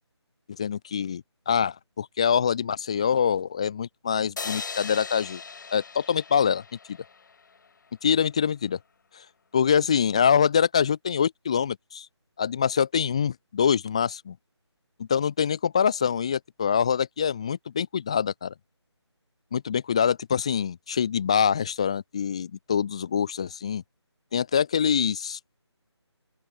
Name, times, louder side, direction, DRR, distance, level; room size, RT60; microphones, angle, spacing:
voice 1, 0.5-5.4 5.7-6.6 6.9-7.0 8.0-8.8 9.1-9.2 9.5-12.1 12.4-14.4 15.0-18.5 19.5-23.8 24.3-25.4, left 7 dB, 10° left, 0.5 m, -25 dB
sound 1, 4.4-7.7, left 5 dB, 40° left, 4.9 m, -39 dB
open air
figure-of-eight pair, 165°, 15 cm